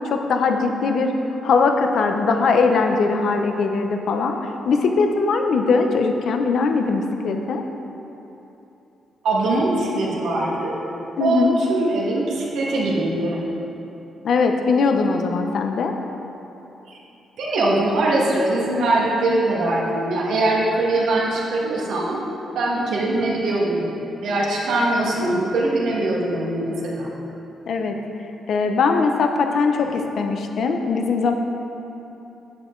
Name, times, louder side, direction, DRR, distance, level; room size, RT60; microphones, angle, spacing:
voice 1, 0.1-1.1 1.4-4.4 4.7-7.6 11.2-11.6 14.2-15.9 27.7-28.0 28.5-31.3, left 4 dB, 55° left, 5 dB, 0.7 m, -20 dB
voice 2, 9.2-10.7 11.2-13.4 16.9-17.0 17.4-22.2 22.5-23.9 24.2-27.1, right 2 dB, 75° right, -5 dB, 1.8 m, -22 dB
9.6 x 8.4 x 3.9 m, 3.0 s
cardioid pair, 160°, 0 cm